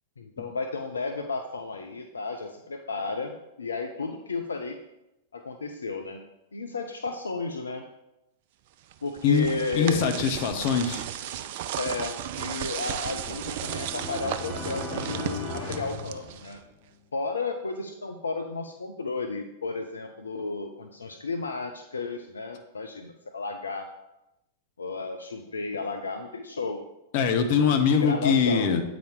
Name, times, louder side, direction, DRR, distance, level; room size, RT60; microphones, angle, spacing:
voice 1, 0.2-4.8 5.3-6.2 6.5-7.9 9.0-10.1 11.8-16.6 17.1-23.9 24.8-26.8 27.5-28.7, left 3 dB, 75° left, 6 dB, 0.5 m, -33 dB
sound 1, 8.9-16.7, right 11 dB, 50° right, 0.4 m, -35 dB
voice 2, 9.7-11.0 27.1-28.8, left 6 dB, 50° left, 6 dB, 0.9 m, -22 dB
sound 2, 12.3-16.9, left 2 dB, 25° left, 2.6 m, -38 dB
8.4 x 4.1 x 4.6 m, 0.89 s
figure-of-eight pair, 95°, 0 cm